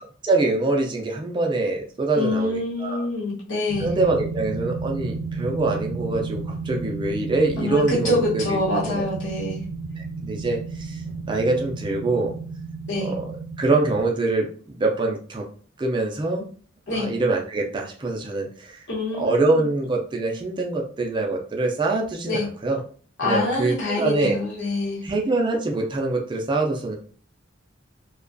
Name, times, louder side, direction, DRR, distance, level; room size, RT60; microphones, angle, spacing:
voice 1, 0.2-3.1 3.8-8.6 8.9-9.0 10.0-11.0 11.3-12.3 13.0-15.4 15.8-16.4 16.9-18.9 19.2-22.8 23.2-24.4 25.0-27.0, right 2 dB, 25° right, 0 dB, 0.4 m, -24 dB
voice 2, 2.2-3.9 7.6-9.6 12.9-13.1 16.9-17.1 18.9-19.7 22.3-22.5 23.2-25.0, left 2 dB, 65° left, -4 dB, 1.0 m, -25 dB
sound 1, 3.7-14.0, right 4 dB, 85° right, 0.6 m, -32 dB
2.3 x 2.2 x 2.5 m, 0.43 s
head